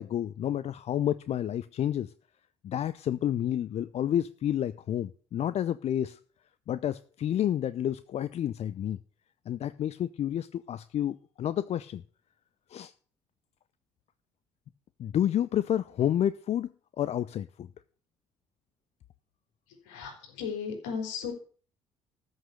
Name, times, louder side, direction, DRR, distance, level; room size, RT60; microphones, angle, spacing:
voice 1, 0.0-2.1 2.6-6.2 6.7-9.0 9.5-12.0 12.7-12.9 15.0-16.7 17.0-17.7, left 10 dB, 45° left, 15 dB, 0.6 m, -30 dB
voice 2, 19.7-21.3, left 6 dB, 70° left, 3 dB, 4.4 m, -36 dB
13.5 x 6.5 x 8.3 m, 0.42 s
figure-of-eight pair, 50°, 15 cm